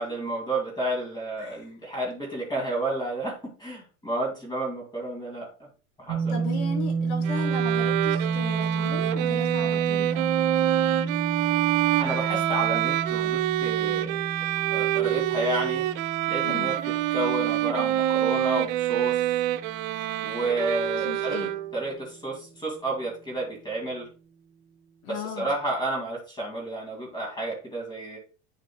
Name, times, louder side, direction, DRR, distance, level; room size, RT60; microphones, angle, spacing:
voice 1, 0.0-5.5 6.0-6.4 12.0-14.2 14.7-15.9 16.3-16.8 17.1-19.3 20.2-24.1 25.1-28.2, right 2 dB, 10° left, 2.2 m, -31 dB
voice 2, 1.4-1.7 6.3-10.3 16.4-16.7 21.0-21.5 25.0-25.5, left 4 dB, 75° left, 4.1 m, -36 dB
sound 1, 6.1-22.1, right 5 dB, 25° right, 0.7 m, -31 dB
Bowed string instrument, 7.2-21.9, right 14 dB, 65° right, 0.6 m, -26 dB
9.3 x 5.4 x 2.3 m
supercardioid pair, 145°, 44 cm